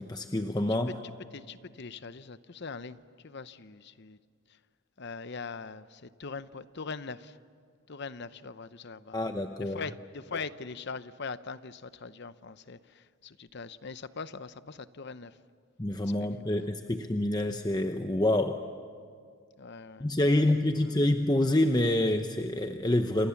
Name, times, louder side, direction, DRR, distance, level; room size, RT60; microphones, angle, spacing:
voice 1, 0.0-1.0 9.1-9.8 15.8-18.6 20.0-23.3, left 1 dB, 20° left, 6 dB, 0.8 m, -27 dB
voice 2, 1.0-4.2 5.0-7.4 7.9-9.2 9.6-15.3 16.0-16.1 16.4-16.7 19.6-20.1 20.3-20.4 20.9-21.0, left 4 dB, 50° left, 14 dB, 0.7 m, -42 dB
30.0 x 27.5 x 7.2 m, 2.1 s
head